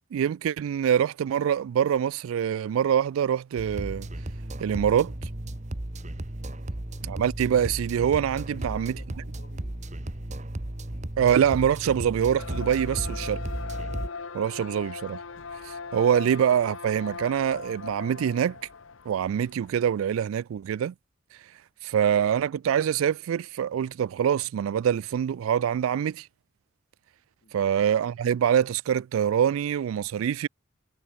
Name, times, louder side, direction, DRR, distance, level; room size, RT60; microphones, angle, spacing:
voice 1, 0.1-4.1 4.6-5.3 7.0-8.9 11.2-13.4 14.3-15.2 15.6-18.6 19.1-20.9 21.8-26.3 27.5-30.5, right 9 dB, 90° right, 0.3 m, -25 dB
sound 1, 3.6-14.1, right 1 dB, 35° right, 1.5 m, -35 dB
voice 2, 6.5-7.0 8.4-10.3 10.9-11.1 27.4-28.0, left 1 dB, 50° left, 5.9 m, -55 dB
sound 2, 12.4-19.9, left 5 dB, 75° left, 1.0 m, -39 dB
head